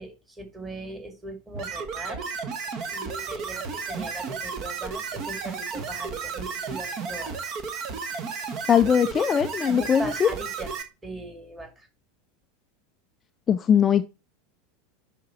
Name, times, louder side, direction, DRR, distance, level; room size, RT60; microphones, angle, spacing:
voice 1, 0.0-2.2 2.9-7.3 9.8-10.7 11.0-11.9, right 1 dB, 15° right, 4 dB, 2.2 m, -39 dB
sound 1, 1.5-10.8, right 5 dB, 40° right, 1.2 m, -33 dB
voice 2, 8.7-10.3 13.5-14.0, left 8 dB, 25° left, 10 dB, 0.3 m, -20 dB
10.0 x 3.6 x 4.2 m, 0.30 s
figure-of-eight pair, 80°, 0 cm